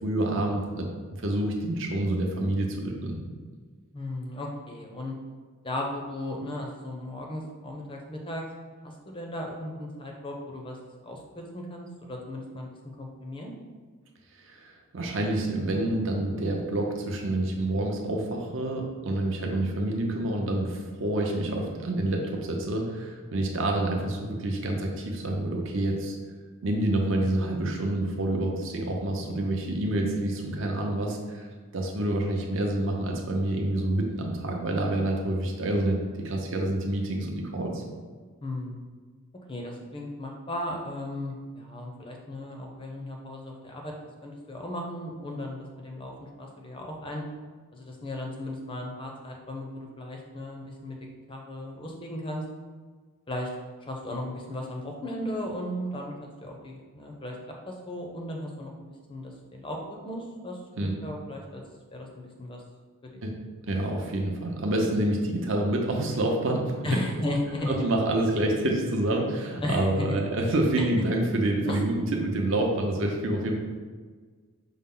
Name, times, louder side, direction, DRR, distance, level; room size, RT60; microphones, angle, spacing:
voice 1, 0.0-0.9 1.2-3.2 14.4-26.2 26.6-31.5 31.7-37.8 60.8-61.0 63.2-63.3 63.6-67.0 67.7-73.5, right 1 dB, 60° right, 1 dB, 0.6 m, -27 dB
voice 2, 3.9-5.2 5.6-8.4 8.8-10.8 11.0-12.7 13.0-13.5 38.4-38.8 39.5-43.9 44.2-47.2 47.7-51.0 51.3-52.4 53.3-53.5 53.9-57.4 57.6-58.7 59.1-59.8 60.0-61.6 61.9-62.6 63.0-63.2 66.8-67.8 69.6-70.2 71.6-71.8, left 1 dB, 25° left, 1 dB, 0.5 m, -35 dB
5.5 x 2.0 x 3.7 m, 1.5 s
head